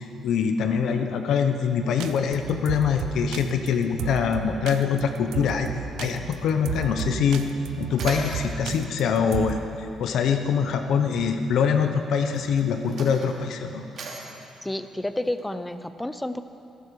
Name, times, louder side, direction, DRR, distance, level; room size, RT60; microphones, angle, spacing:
voice 1, 0.0-7.5 7.8-13.8, left 6 dB, 75° left, 6 dB, 0.9 m, -24 dB
sound 1, 2.0-9.6, right 8 dB, 90° right, 0.6 m, -33 dB
Mechanisms, 7.9-10.2 11.2-11.4 12.2-15.8, right 3 dB, 60° right, 2.9 m, -40 dB
voice 2, 14.6-16.4, left 1 dB, 10° left, 11 dB, 0.7 m, -30 dB
21.0 x 12.0 x 4.9 m, 2.8 s
cardioid pair, 90°, 0 cm